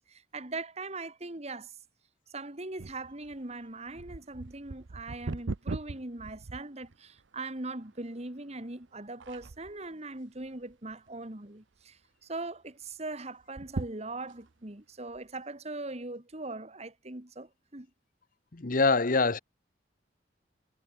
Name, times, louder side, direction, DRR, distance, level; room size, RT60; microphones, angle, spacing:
voice 1, 0.1-1.7 2.3-17.9, right 2 dB, 35° right, 2.1 m, -40 dB
sound 1, 2.8-7.3 7.8-7.9 8.6-8.9 9.2-9.9 10.4-11.1 11.4-11.5 11.8-11.9 13.4-14.5 15.1-15.2, right 3 dB, 85° right, 0.8 m, -40 dB
voice 2, 18.5-19.4, left 3 dB, 45° left, 1.0 m, -24 dB
head